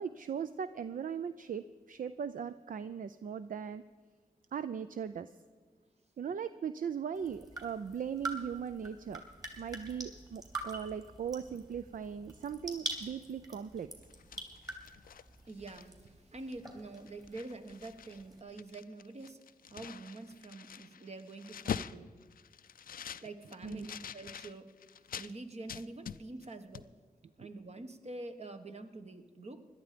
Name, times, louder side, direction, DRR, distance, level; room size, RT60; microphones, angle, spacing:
voice 1, 0.0-3.8 4.5-5.3 6.2-9.2 9.6-13.9 23.6-23.9, right 7 dB, 65° right, 12 dB, 0.5 m, -39 dB
sound 1, 7.1-18.4, right 2 dB, 25° right, 3.2 m, -46 dB
sound 2, 14.0-16.1 16.5-16.7 17.0-18.2 18.5-25.3 25.7-26.5 26.7-26.9, left 8 dB, 75° left, 0.4 m, -44 dB
voice 2, 15.5-19.4 19.7-22.2 23.2-24.7 25.1-26.9 27.4-29.7, right 2 dB, 45° right, 7 dB, 1.3 m, -46 dB
17.0 x 11.5 x 5.1 m, 1.5 s
cardioid pair, 55°, 15 cm